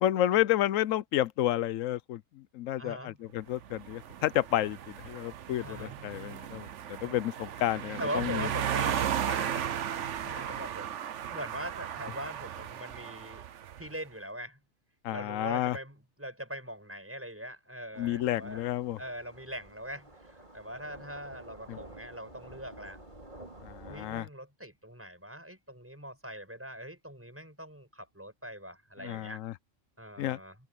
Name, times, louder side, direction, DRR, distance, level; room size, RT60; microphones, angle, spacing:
voice 1, 0.0-8.5 15.0-15.8 18.0-19.0 21.7-21.8 23.6-24.3 29.0-29.5 30.2-30.4, left 13 dB, 85° left, 1.0 m, -31 dB
voice 2, 2.8-3.2 5.6-6.0 8.0-9.7 10.2-13.4 13.8-14.6 15.1-18.6 19.0-23.0 23.9-29.4 30.0-30.6, equal, 10° right, 7.7 m, -42 dB
sound 1, 3.6-13.9, right 9 dB, 70° right, 1.1 m, -35 dB
sound 2, 17.9-24.2, right 1 dB, 35° right, 4.4 m, -51 dB
open air
omnidirectional pair, 1.3 m